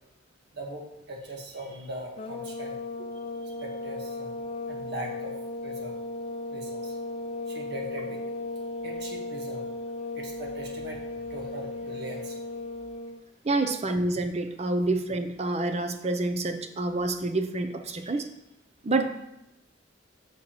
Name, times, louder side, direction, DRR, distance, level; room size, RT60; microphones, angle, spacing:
voice 1, 0.5-2.8 3.4-4.4 4.7-6.0 6.5-7.0 7.5-8.2 8.8-9.7 10.1-12.4 18.0-18.2, right 1 dB, 65° right, 0 dB, 1.5 m, -40 dB
sound 1, 2.2-13.2, left 2 dB, 35° left, 0.6 m, -36 dB
voice 2, 13.4-18.3 18.8-19.1, right 2 dB, 35° right, 8 dB, 0.6 m, -28 dB
8.7 x 6.0 x 3.1 m, 0.88 s
head